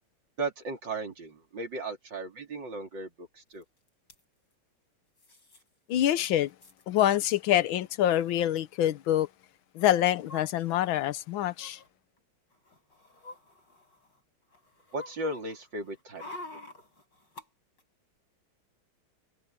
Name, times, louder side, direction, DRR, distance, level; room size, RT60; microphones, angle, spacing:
voice 1, 0.4-3.6 14.9-16.2, right 2 dB, 60° right, 3.9 m, -36 dB
sound 1, 3.6-3.7 3.9-4.2 5.2-5.6 6.0-6.1 6.2-6.8 7.7-7.8 8.0-8.2 9.8-10.9 11.5-11.9 12.5-14.2 14.5-17.4 17.8-17.9, left 2 dB, 60° left, 7.7 m, -48 dB
voice 2, 5.9-6.5 6.9-9.3 9.7-11.8, left 12 dB, 75° left, 1.5 m, -26 dB
omnidirectional pair, 2.2 m